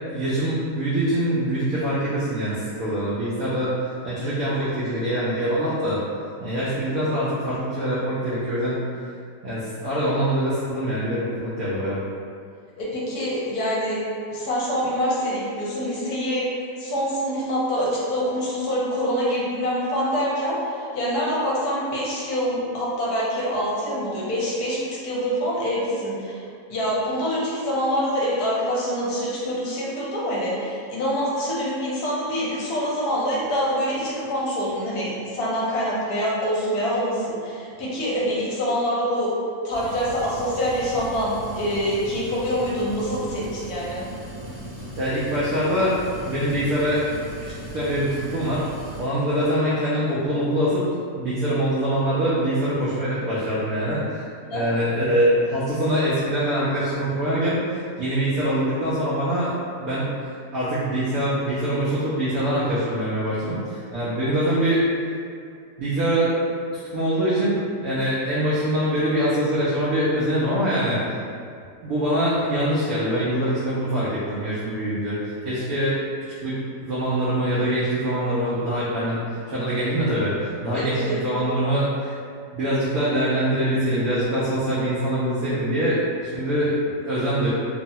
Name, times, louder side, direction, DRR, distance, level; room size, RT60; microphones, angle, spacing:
voice 1, 0.1-6.0 6.4-8.8 9.4-12.0 45.0-46.0 46.2-47.0 47.4-48.6 49.0-50.8 51.1-59.5 59.8-60.1 60.5-64.8 65.8-66.3 66.9-71.0 71.8-76.0 76.4-79.2 79.5-82.2 82.5-87.5, right 1 dB, 70° right, -10 dB, 0.9 m, -24 dB
voice 2, 12.8-14.0 14.3-16.5 16.8-26.4 26.7-39.3 39.6-44.0 54.5-54.6 80.7-81.2, equal, 70° left, -6 dB, 1.1 m, -25 dB
sound 1, 39.7-49.1, right 1 dB, 20° left, 0.9 m, -38 dB
3.0 x 2.1 x 2.7 m, 2.3 s
omnidirectional pair, 1.8 m